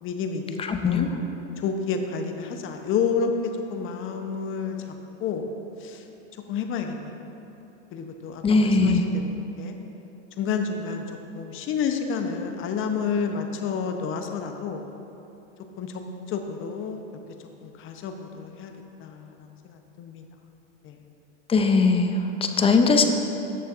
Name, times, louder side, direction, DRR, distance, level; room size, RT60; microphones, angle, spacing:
voice 1, 0.0-0.6 0.8-1.1 1.6-3.3 3.7-4.8 5.2-5.5 5.8-6.0 6.5-7.2 7.9-9.2 9.6-9.7 10.4-11.0 11.3-14.8 15.8-16.0 16.3-17.0 17.6-18.7 19.0-19.2 19.6-20.2 20.8-20.9 22.4-22.8, left 6 dB, 35° left, 5 dB, 0.8 m, -29 dB
voice 2, 0.6-1.2 8.4-9.0 21.5-23.1, left 4 dB, 15° left, 5 dB, 0.5 m, -20 dB
13.5 x 6.7 x 2.5 m, 3.0 s
hypercardioid pair, 105°, 36 cm